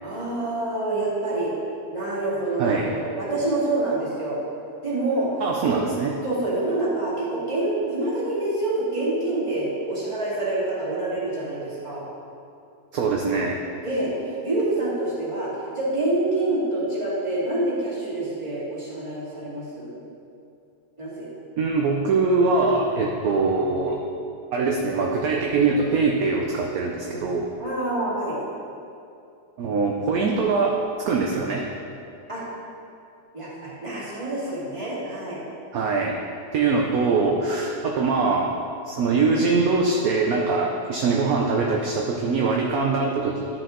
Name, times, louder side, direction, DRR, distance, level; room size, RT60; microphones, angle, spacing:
voice 1, 0.0-1.5 1.9-4.4 4.8-5.3 5.7-5.8 6.2-12.0 13.8-15.5 15.7-20.0 21.0-21.3 27.6-28.4 32.3-32.4 33.3-35.4, right 2 dB, 15° right, -9 dB, 2.3 m, -26 dB
voice 2, 5.4-6.1 12.9-13.6 21.6-24.0 24.5-27.5 29.6-30.8 31.1-31.6 35.7-36.1 36.5-38.5 38.9-43.5, right 4 dB, 65° right, 0 dB, 1.0 m, -22 dB
11.5 x 5.9 x 3.8 m, 2.6 s
omnidirectional pair, 1.9 m